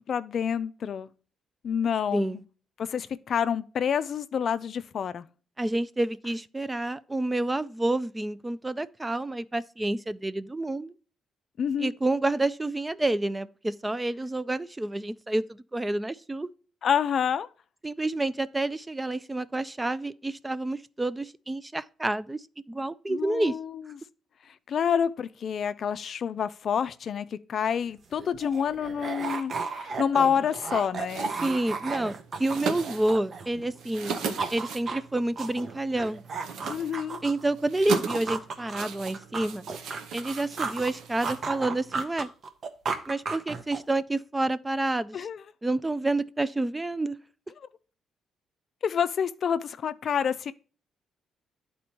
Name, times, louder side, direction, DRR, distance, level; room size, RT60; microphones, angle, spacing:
voice 1, 0.1-1.1 1.6-2.4 2.8-5.3 11.6-11.9 16.8-17.5 23.1-23.8 24.5-31.3 36.6-37.2 45.1-45.4 48.8-50.5, left 7 dB, 55° left, 0.4 m, -28 dB
voice 2, 5.6-10.9 11.8-16.5 17.8-23.5 31.4-34.2 34.5-36.2 37.2-39.6 40.1-42.3 43.1-45.3 45.6-47.2, right 2 dB, 15° right, 0.3 m, -29 dB
sound 1, 27.8-27.9 28.2-33.7 34.0-37.5 37.9-40.9 41.2-44.0, right 4 dB, 50° right, 0.8 m, -34 dB
sound 2, 31.0-41.9, right 6 dB, 80° right, 0.8 m, -38 dB
11.0 x 4.2 x 2.9 m
cardioid pair, 90°, 0 cm